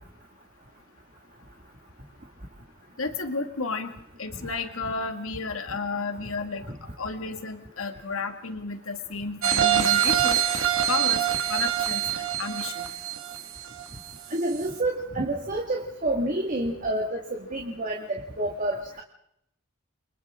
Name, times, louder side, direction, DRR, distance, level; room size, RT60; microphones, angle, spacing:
voice 1, 3.0-3.9 4.2-6.7 7.0-10.4 10.9-11.2 11.5-12.9, left 4 dB, 85° left, 6 dB, 2.1 m, -32 dB
sound 1, 9.4-14.2 14.6-14.7, right 10 dB, 80° right, 2.0 m, -25 dB
voice 2, 14.3-19.0, right 1 dB, 40° right, 0 dB, 2.0 m, -28 dB
29.5 x 24.0 x 3.7 m, 0.75 s
head